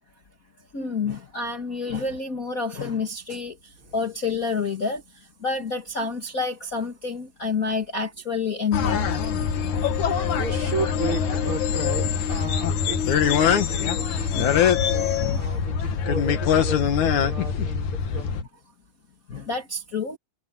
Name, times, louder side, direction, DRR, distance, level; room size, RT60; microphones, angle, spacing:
voice 1, 0.7-3.6 3.9-5.0 5.4-9.1 13.5-13.9 14.3-14.6 15.2-15.5 19.3-20.2, left 4 dB, 35° left, 1.9 m, -28 dB
sound 1, 8.7-18.4, left 7 dB, 80° left, 3.1 m, -23 dB
voice 2, 10.3-18.3, right 4 dB, 45° right, 6.8 m, -35 dB
omnidirectional pair, 3.4 m